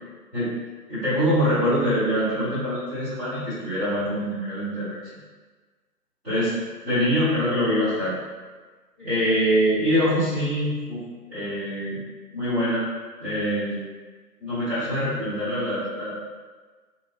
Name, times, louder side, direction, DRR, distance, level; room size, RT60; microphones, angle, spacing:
voice 1, 0.9-5.0 6.2-6.5 6.8-8.2 9.0-11.0 11.3-12.0 12.3-12.8 13.2-13.7 14.4-16.2, equal, 5° right, -17 dB, 0.8 m, -24 dB
3.4 x 2.8 x 2.7 m, 1.4 s
figure-of-eight pair, 145°, 49 cm